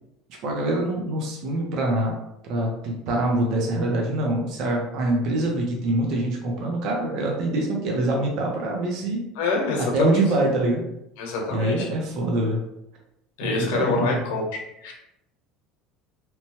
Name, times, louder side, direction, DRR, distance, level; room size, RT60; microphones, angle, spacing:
voice 1, 0.4-2.2 2.5-9.2 9.9-10.8 11.5-12.6 13.4-14.2, right 1 dB, 55° right, -1 dB, 0.7 m, -24 dB
voice 2, 9.4-10.2 11.2-11.9 13.4-14.4 14.8-14.9, left 3 dB, 85° left, 0 dB, 0.8 m, -26 dB
2.9 x 2.2 x 2.9 m, 0.83 s
cardioid pair, 145°, 0 cm